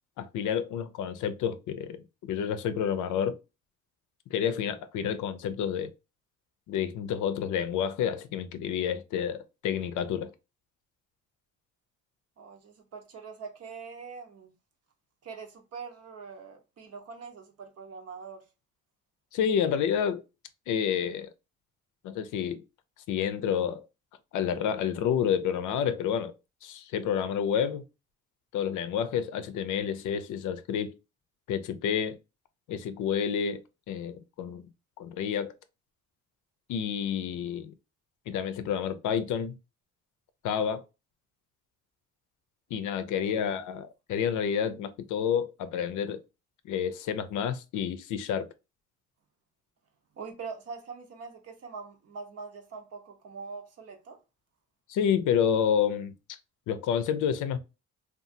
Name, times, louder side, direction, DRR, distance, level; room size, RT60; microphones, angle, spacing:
voice 1, 0.2-3.4 4.3-5.9 6.7-10.3 19.3-20.2 20.7-21.3 22.0-22.6 23.1-23.9 24.3-26.3 26.6-27.8 28.5-30.9 31.5-32.2 32.7-34.7 35.0-35.5 36.7-37.7 38.3-39.5 40.4-40.8 42.7-46.2 46.6-48.5 54.9-56.1 56.7-57.6, left 8 dB, 80° left, 0.5 m, -29 dB
voice 2, 12.4-14.5 15.2-18.4 43.1-43.6 50.2-54.2, right 5 dB, 55° right, 0.8 m, -43 dB
2.7 x 2.4 x 2.6 m
cardioid pair, 90°, 30 cm